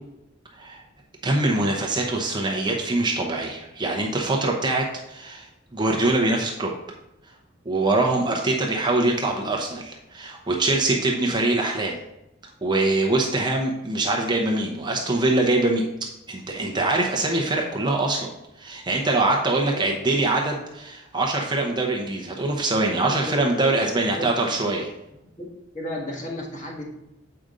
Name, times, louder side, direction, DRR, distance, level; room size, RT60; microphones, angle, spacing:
voice 1, 1.2-6.7 7.7-12.0 12.6-15.8 16.3-18.3 18.6-24.9, right 2 dB, 20° right, 0 dB, 0.8 m, -23 dB
voice 2, 19.5-19.9 23.1-23.5 23.9-24.3 25.4-25.5 25.7-26.9, left 1 dB, 35° left, -2 dB, 1.6 m, -34 dB
7.8 x 5.0 x 3.8 m, 0.90 s
head